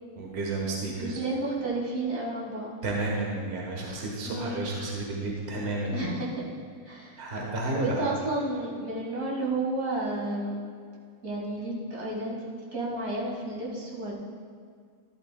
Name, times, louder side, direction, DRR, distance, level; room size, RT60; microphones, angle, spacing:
voice 1, 0.2-1.2 2.8-6.0 7.2-8.0, right 2 dB, 45° right, -2 dB, 1.4 m, -31 dB
voice 2, 1.0-2.7 4.2-4.6 5.9-6.5 6.9-7.2 7.7-10.6 11.2-12.4 12.7-14.1, right 2 dB, 75° right, -4 dB, 2.4 m, -31 dB
12.0 x 11.5 x 2.2 m, 2.1 s
omnidirectional pair, 1.6 m